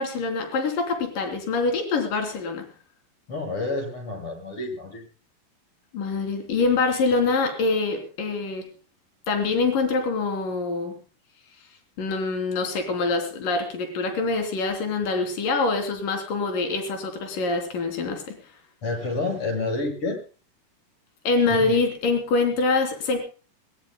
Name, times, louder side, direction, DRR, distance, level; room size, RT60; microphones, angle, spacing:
voice 1, 0.0-2.7 5.9-8.7 9.3-10.9 12.0-18.4 21.2-23.2, left 3 dB, 65° left, 4 dB, 5.0 m, -25 dB
voice 2, 3.3-5.1 18.8-20.2 21.5-21.7, left 2 dB, 35° left, 2 dB, 8.4 m, -29 dB
21.5 x 20.5 x 2.2 m, 0.38 s
omnidirectional pair, 4.1 m